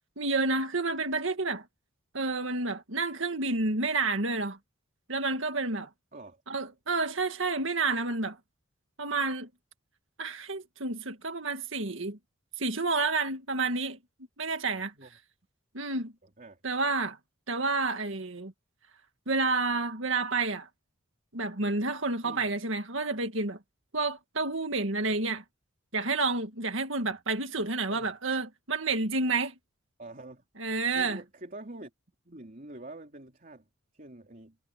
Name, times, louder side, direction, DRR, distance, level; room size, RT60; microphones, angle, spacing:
voice 1, 0.2-1.6 2.1-4.6 5.1-5.9 6.5-8.4 9.0-9.5 10.2-12.2 12.6-14.0 14.4-14.9 15.7-16.1 16.6-17.2 17.5-18.5 19.3-20.7 21.3-23.6 23.9-25.4 25.9-29.5 30.6-31.2, right 3 dB, 65° right, 2.0 m, -29 dB
voice 2, 14.8-15.1 16.2-16.6 22.2-22.5 27.9-28.1 30.0-30.4 30.9-31.9 32.3-33.7 33.9-34.6, right 2 dB, 40° right, 3.5 m, -46 dB
head